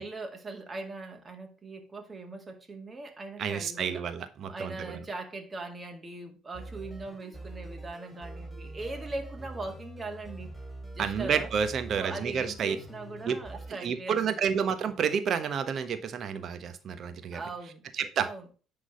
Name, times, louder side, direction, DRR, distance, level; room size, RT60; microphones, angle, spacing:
voice 1, 0.0-4.1 4.4-10.6 10.9-11.5 11.9-14.4 17.3-17.8 18.2-18.5, right 3 dB, 25° right, 2.1 m, -40 dB
voice 2, 3.4-5.0 11.0-12.8 13.2-13.4 13.8-17.4 17.9-18.3, right 7 dB, 55° right, 1.2 m, -30 dB
sound 1, 6.5-13.7, right 1 dB, 5° right, 4.5 m, -44 dB
10.0 x 3.8 x 5.2 m
hypercardioid pair, 70°, 0 cm